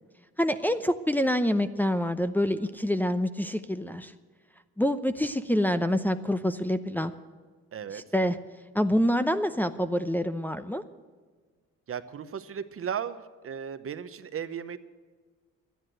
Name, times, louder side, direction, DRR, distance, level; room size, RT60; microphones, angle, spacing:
voice 1, 0.4-4.1 4.8-7.1 7.9-8.4 8.7-10.8, equal, 5° left, 7 dB, 0.7 m, -26 dB
voice 2, 7.7-8.0 11.9-14.8, right 8 dB, 50° right, 12 dB, 0.9 m, -36 dB
12.0 x 10.0 x 7.7 m, 1.5 s
cardioid pair, 90°, 30 cm